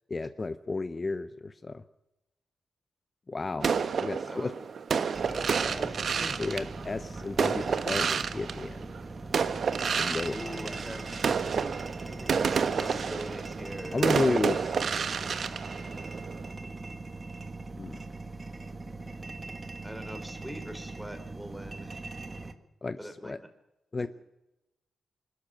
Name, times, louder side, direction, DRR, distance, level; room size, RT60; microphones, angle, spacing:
voice 1, 0.1-1.8 3.3-3.7 4.0-4.5 6.4-8.9 10.0-10.6 13.9-14.9 17.8-18.0 22.8-23.4 23.9-24.1, left 3 dB, 25° left, 12 dB, 0.7 m, -32 dB
sound 1, 3.6-9.0 9.3-16.5, right 6 dB, 55° right, 1.2 m, -30 dB
voice 2, 4.2-4.6 5.2-6.6 10.3-11.3 12.1-14.1 19.8-22.1 23.0-23.5 24.0-24.1, equal, 5° right, 8 dB, 3.3 m, -42 dB
sound 2, 5.1-22.5, right 3 dB, 25° right, 1.6 m, -40 dB
25.5 x 13.5 x 8.9 m, 0.97 s
wide cardioid pair, 135°, 0 cm